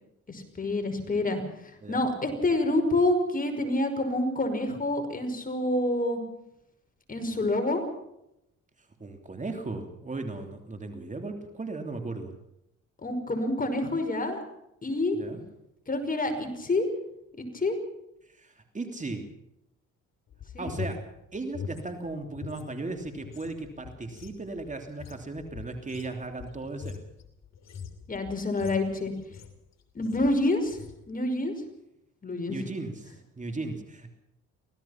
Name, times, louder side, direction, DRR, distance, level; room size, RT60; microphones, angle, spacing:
voice 1, 0.3-6.2 7.1-7.8 13.0-14.4 14.8-15.2 15.9-16.9 17.3-17.8 20.5-20.7 28.1-29.1 30.0-31.5 32.2-32.6, left 2 dB, 30° left, 6 dB, 5.5 m, -27 dB
voice 2, 9.0-12.4 15.1-15.4 18.2-19.3 20.6-21.0 21.3-27.0 32.5-34.1, right 3 dB, 25° right, 5 dB, 3.1 m, -36 dB
sound 1, 20.3-22.7 23.0-29.7 30.0-30.4 30.7-31.0, left 6 dB, 60° left, 3.2 m, -42 dB
25.0 x 17.5 x 5.9 m, 0.82 s
cardioid pair, 90°, 30 cm